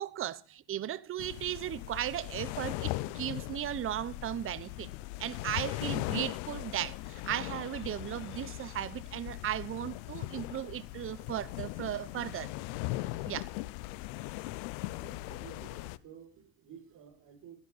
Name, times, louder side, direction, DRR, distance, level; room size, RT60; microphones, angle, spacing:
voice 1, 0.0-4.9 5.2-12.5 13.3-13.5, right 11 dB, 30° right, 0.8 m, -36 dB
sound 1, 1.2-16.0, left 18 dB, 70° left, 0.8 m, -39 dB
voice 2, 15.0-17.5, right 8 dB, 50° right, 6.7 m, -52 dB
14.5 x 12.0 x 4.2 m
supercardioid pair, 105°, 42 cm